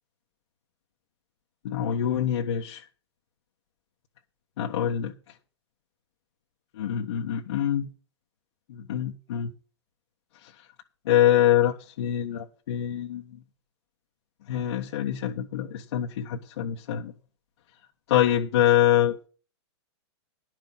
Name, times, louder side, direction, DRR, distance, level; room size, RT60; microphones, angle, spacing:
voice 1, 1.6-2.8 4.6-5.1 6.7-7.9 8.7-9.5 11.0-13.2 14.5-17.1 18.1-19.2, left 11 dB, 65° left, 1.4 m, -25 dB
11.0 x 6.4 x 7.5 m
hypercardioid pair, 130°, 15 cm